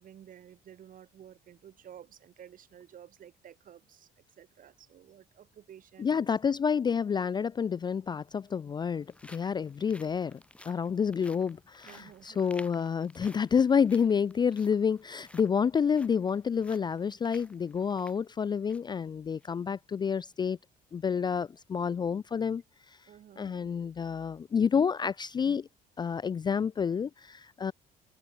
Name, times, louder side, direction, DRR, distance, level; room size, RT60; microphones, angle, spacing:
voice 1, 0.0-4.1 4.4-6.3 11.8-12.5 23.1-23.7, right 10 dB, 55° right, 4.4 m, -52 dB
voice 2, 6.0-10.4 10.7-20.6 20.9-22.6 23.4-25.7 26.0-27.7, left 6 dB, 25° left, 0.4 m, -29 dB
sound 1, 8.5-19.0 19.3-19.5 20.0-20.2, left 1 dB, 5° left, 3.2 m, -56 dB
open air
cardioid pair, 110°, 17 cm